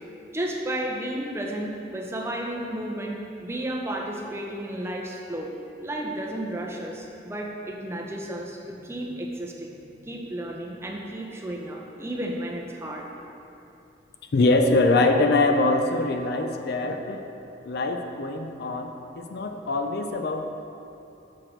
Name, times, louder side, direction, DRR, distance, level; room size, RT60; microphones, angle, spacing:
voice 1, 0.3-5.5 5.8-13.0, right 1 dB, 15° right, -1 dB, 0.6 m, -33 dB
voice 2, 14.3-17.2 17.6-20.4, left 2 dB, 55° left, 5 dB, 0.4 m, -23 dB
6.4 x 6.0 x 4.4 m, 2.8 s
head